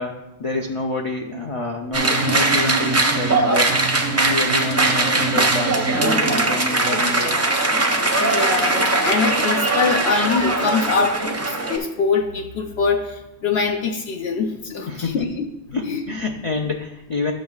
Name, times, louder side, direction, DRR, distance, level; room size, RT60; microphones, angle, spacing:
voice 1, 0.0-3.8 4.1-7.4 14.9-15.3 15.7-17.3, left 3 dB, 45° left, 1 dB, 0.4 m, -27 dB
sound 1, 1.9-11.8, right 2 dB, 20° right, 0.4 m, -20 dB
voice 2, 8.2-15.5 15.9-16.0, left 5 dB, 70° left, 3 dB, 0.9 m, -23 dB
10.5 x 6.2 x 2.4 m, 0.92 s
omnidirectional pair, 1.1 m